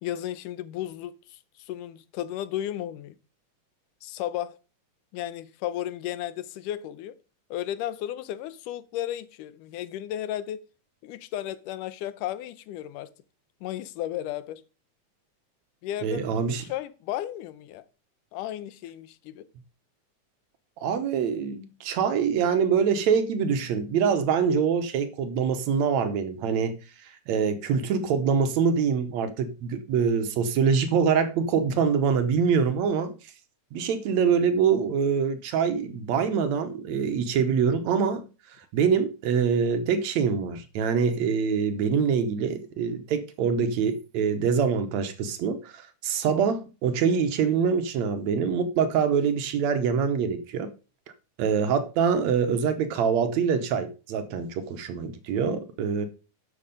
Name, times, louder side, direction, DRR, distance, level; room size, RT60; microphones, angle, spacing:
voice 1, 0.0-3.1 4.0-4.6 5.1-7.2 7.5-10.7 11.0-13.1 13.6-14.6 15.8-16.2 16.6-17.9 18.3-19.5, left 12 dB, 90° left, 2.3 m, -34 dB
voice 2, 16.0-16.6 20.8-26.7 27.0-33.1 33.7-38.3 38.7-50.7 51.4-56.1, right 6 dB, 70° right, 2.1 m, -25 dB
11.5 x 6.4 x 5.3 m
omnidirectional pair, 3.6 m